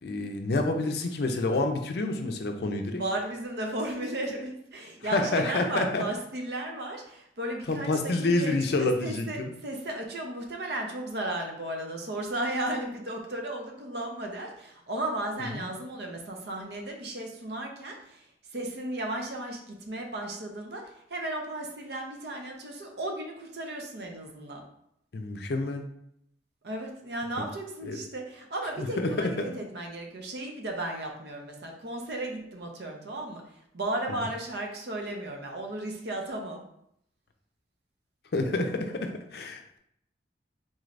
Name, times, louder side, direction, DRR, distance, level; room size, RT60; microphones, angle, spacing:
voice 1, 0.0-3.0 5.0-6.0 7.7-9.5 15.4-15.7 25.1-25.8 27.8-28.0 28.8-29.5 38.3-39.8, left 2 dB, 60° left, 4 dB, 0.4 m, -28 dB
voice 2, 3.0-18.3 18.5-24.6 26.6-33.4 33.7-36.6, right 1 dB, 65° right, 2 dB, 0.7 m, -35 dB
3.9 x 3.2 x 2.5 m, 0.73 s
head